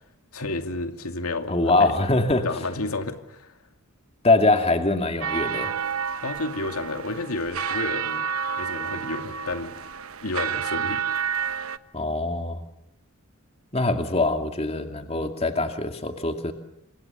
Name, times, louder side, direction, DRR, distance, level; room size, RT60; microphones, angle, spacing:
voice 1, 0.3-1.9 2.4-3.5 6.2-8.2 8.6-9.7 10.2-11.0, left 2 dB, 85° left, 6 dB, 2.5 m, -31 dB
voice 2, 1.5-2.5 4.2-5.7 11.9-12.6 13.7-16.5, left 2 dB, 30° left, 5 dB, 2.5 m, -23 dB
sound 1, 5.2-11.8, right 7 dB, 75° right, 1.1 m, -30 dB
29.5 x 26.5 x 7.1 m, 0.79 s
head